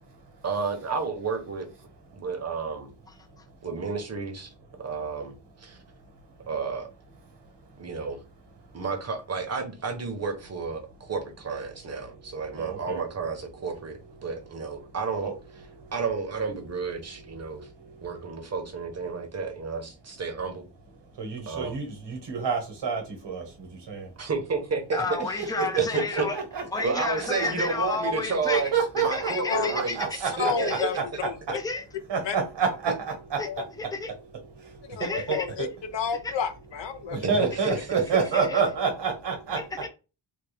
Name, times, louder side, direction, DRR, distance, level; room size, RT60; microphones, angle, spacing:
voice 1, 0.4-1.7 2.1-2.9 3.6-4.5 4.8-5.8 6.5-6.9 7.8-8.2 8.7-17.7 18.0-20.7 21.5-21.8 24.2-25.4 25.8-26.3 26.8-30.9 37.2-38.3, right 4 dB, 35° right, 0.9 m, -31 dB
voice 2, 12.6-13.0 15.2-15.3 21.2-23.4 23.9-24.1 25.9-26.4 26.7-26.8 28.5-30.5 32.1-33.1 35.0-35.1 35.6-35.7 37.1-39.6, right 5 dB, 60° right, 1.3 m, -28 dB
voice 3, 24.9-26.4 26.7-28.7 29.0-30.2 30.6-30.9 31.5-31.8 33.4-33.5 33.8-34.1 35.0-35.5 36.2-36.3 37.6-37.7 38.3-38.6 39.6-39.9, left 4 dB, 10° left, 0.4 m, -31 dB
voice 4, 30.4-31.6 32.2-32.4 33.5-33.6 34.9-35.7 35.9-37.5, left 6 dB, 65° left, 0.7 m, -30 dB
3.5 x 2.3 x 3.4 m
wide cardioid pair, 125°, 46 cm